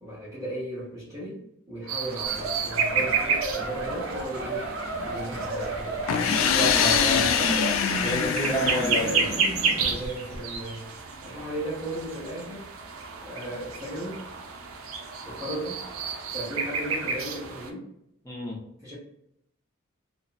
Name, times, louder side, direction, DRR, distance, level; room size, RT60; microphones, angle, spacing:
voice 1, 0.0-4.7 5.0-6.1 6.8-7.6 8.3-10.9 11.2-12.7 13.2-14.3 15.3-15.9 16.3-17.9 18.8-18.9, right 1 dB, 15° right, -8 dB, 0.8 m, -36 dB
sound 1, 1.9-17.7, right 5 dB, 85° right, 0.4 m, -31 dB
sound 2, 2.2-10.1 10.3-10.6, right 2 dB, 65° right, 1.1 m, -34 dB
sound 3, 6.1-9.8, left 7 dB, 70° left, 0.3 m, -24 dB
voice 2, 6.6-7.3 8.0-9.2 18.2-18.6, equal, 15° left, -2 dB, 0.6 m, -29 dB
2.5 x 2.0 x 2.4 m, 0.77 s
head